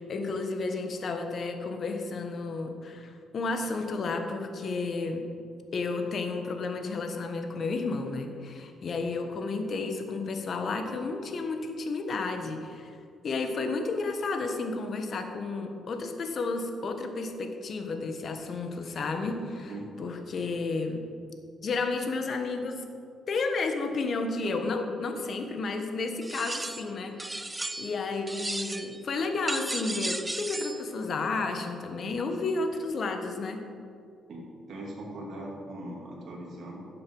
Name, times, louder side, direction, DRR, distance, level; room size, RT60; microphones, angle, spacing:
voice 1, 0.0-5.2 5.7-13.0 13.2-19.7 20.0-21.0 21.6-22.8 23.3-27.1 27.8-33.6, left 3 dB, 50° left, 5 dB, 1.3 m, -32 dB
sound 1, 26.2-26.9 27.2-28.0 28.3-29.0 29.5-30.8, right 2 dB, 15° right, 0.6 m, -34 dB
voice 2, 34.3-36.8, right 1 dB, 55° right, -3 dB, 2.6 m, -40 dB
12.0 x 7.7 x 5.5 m, 2.5 s
cardioid pair, 90°, 0 cm